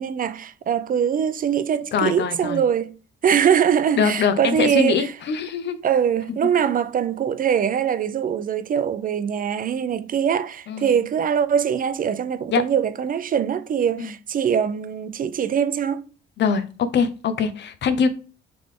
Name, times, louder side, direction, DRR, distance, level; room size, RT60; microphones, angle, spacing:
voice 1, 0.0-2.9 3.2-5.1 5.8-16.0, right 8 dB, 45° right, 0.4 m, -22 dB
voice 2, 1.9-2.6 4.0-5.8 6.6-6.7 10.7-10.9 12.5-12.6 14.0-14.1 16.4-18.1, left 6 dB, 60° left, 0.7 m, -23 dB
3.8 x 3.3 x 3.7 m
cardioid pair, 90°, 20 cm